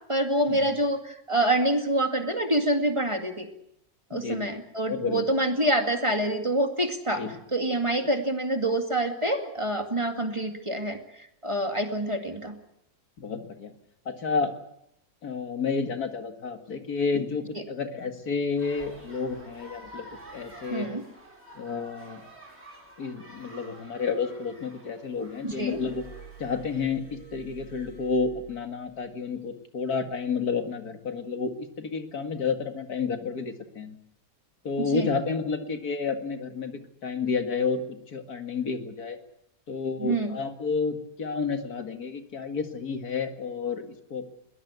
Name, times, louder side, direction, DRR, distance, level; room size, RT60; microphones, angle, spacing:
voice 1, 0.1-3.5 4.1-7.2 7.5-12.5 17.5-17.6 20.7-21.0 25.4-25.8 34.8-35.1 40.0-40.4, right 1 dB, 20° right, 6 dB, 2.2 m, -26 dB
voice 2, 4.9-5.3 7.2-7.3 13.2-13.7 14.1-14.5 15.2-20.1 20.3-20.9 21.6-22.2 23.0-26.0 26.4-34.0 34.6-39.2 39.7-44.3, left 5 dB, 75° left, 7 dB, 2.5 m, -30 dB
sound 1, 18.6-26.9, right 1 dB, 40° right, 4.4 m, -49 dB
Glass, 25.5-29.1 30.1-30.3, right 5 dB, 35° left, 6.4 m, -49 dB
22.0 x 19.0 x 8.2 m, 0.76 s
omnidirectional pair, 1.6 m